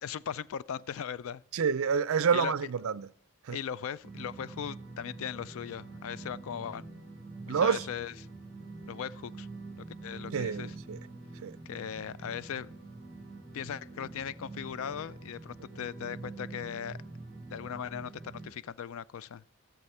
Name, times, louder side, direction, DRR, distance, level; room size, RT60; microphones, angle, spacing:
voice 1, 0.0-1.4 2.3-2.7 3.5-6.9 7.5-8.1 8.9-9.5 10.0-10.8 11.7-12.7 13.5-17.0 17.5-19.4, left 8 dB, 65° left, 0.3 m, -38 dB
voice 2, 1.5-3.1 3.5-3.6 7.5-7.8 10.3-11.0 11.4-11.5, right 6 dB, 70° right, 0.4 m, -28 dB
sound 1, 4.0-18.5, right 3 dB, 10° right, 4.8 m, -45 dB
14.0 x 7.2 x 4.3 m
head